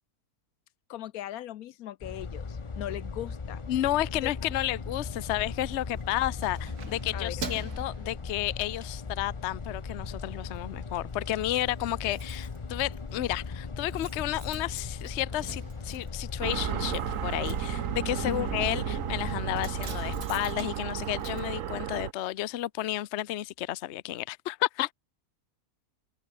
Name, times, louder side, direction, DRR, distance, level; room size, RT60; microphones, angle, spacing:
voice 1, 0.9-3.6 4.2-4.5 7.1-7.5 13.3-13.4 18.2-18.5, left 13 dB, 75° left, 1.1 m, -39 dB
sound 1, 2.0-20.2, left 4 dB, 30° left, 0.6 m, -38 dB
voice 2, 3.7-24.9, left 14 dB, 60° left, 0.8 m, -32 dB
Keys jangling, 5.8-8.9 9.3-9.6 9.9-10.6 10.9-11.0 11.2-11.3 11.5-22.3 22.6-22.7, right 5 dB, 80° right, 3.0 m, -47 dB
sound 2, 16.4-22.1, right 11 dB, 65° right, 1.1 m, -33 dB
omnidirectional pair, 1.6 m